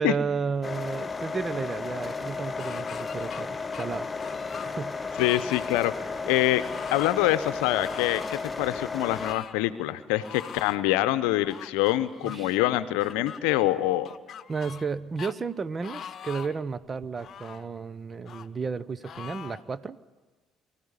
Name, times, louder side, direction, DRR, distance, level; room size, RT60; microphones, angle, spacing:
voice 1, 0.0-4.1 4.5-5.2 12.2-12.6 14.5-20.0, right 5 dB, 35° right, 17 dB, 0.9 m, -33 dB
sound 1, 0.6-9.3, left 4 dB, 25° left, 1.2 m, -34 dB
sound 2, 2.6-3.4 3.7-4.7 5.1-5.7 6.6-7.2 7.8-8.5 9.1-9.6 10.2-10.8 11.5-12.4 13.0-13.4 14.0-14.9 15.2-15.3 15.8-16.6 17.1-17.7 18.3-18.5 19.0-19.6, left 8 dB, 50° left, 1.0 m, -42 dB
voice 2, 5.2-5.9 6.2-6.6 6.9-14.1, left 15 dB, 75° left, 14 dB, 0.8 m, -25 dB
24.0 x 14.0 x 9.7 m, 1.3 s
hypercardioid pair, 60°, 0 cm